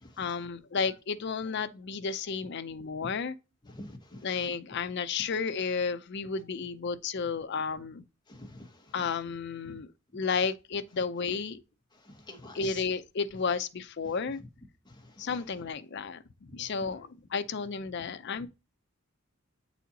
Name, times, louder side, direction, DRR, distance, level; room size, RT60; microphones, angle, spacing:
voice 1, 0.2-3.3 4.2-8.0 8.9-9.9 10.1-11.6 12.5-14.4 15.2-16.2 16.5-18.5, left 5 dB, 55° left, 0.5 m, -32 dB
voice 2, 3.7-4.3 8.3-9.1 9.6-9.8 12.0-12.8 14.4-14.5 14.8-15.4 18.4-18.5, left 1 dB, 20° left, 1.2 m, -47 dB
8.3 x 4.2 x 2.8 m
head